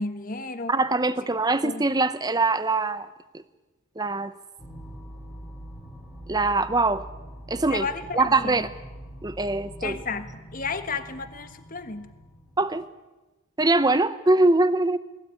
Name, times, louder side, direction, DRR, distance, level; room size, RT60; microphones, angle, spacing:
voice 1, 0.0-0.7 1.6-1.8 7.7-8.7 9.8-12.1, left 4 dB, 40° left, 10 dB, 1.4 m, -32 dB
voice 2, 0.7-3.1 3.3-3.4 4.0-4.3 6.3-7.0 7.5-7.9 8.1-8.7 9.2-10.0 12.6-12.9 13.6-15.0, right 2 dB, 20° right, 14 dB, 0.8 m, -22 dB
sound 1, 4.6-12.8, right 1 dB, ahead, 3.8 m, -43 dB
21.0 x 16.5 x 9.7 m, 1.1 s
head